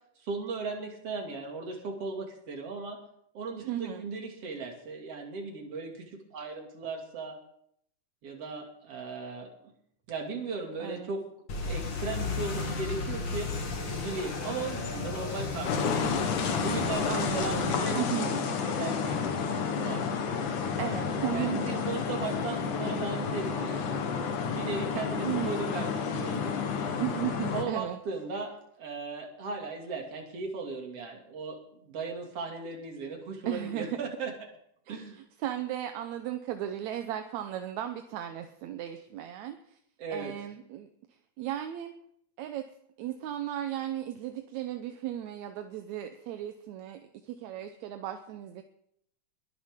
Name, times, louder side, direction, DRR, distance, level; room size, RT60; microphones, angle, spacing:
voice 1, 0.2-3.0 3.3-7.4 8.2-9.7 10.1-11.3 11.6-13.6 13.9-16.1 16.6-20.1 21.3-24.0 24.5-26.6 27.5-34.5 34.9-35.2 40.0-40.3, right 4 dB, 50° right, 1 dB, 3.3 m, -37 dB
voice 2, 3.6-4.0 10.8-11.1 17.1-18.3 20.8-21.6 25.2-25.9 27.0-28.0 33.5-34.0 35.4-39.8 40.1-40.9 41.4-41.9 42.4-42.6 43.0-48.6, right 11 dB, 75° right, 7 dB, 2.0 m, -35 dB
sound 1, 11.5-17.8, left 4 dB, 45° left, 1.9 m, -34 dB
sound 2, 15.6-27.6, left 6 dB, 75° left, 2.9 m, -30 dB
21.5 x 11.5 x 3.7 m, 0.70 s
omnidirectional pair, 3.5 m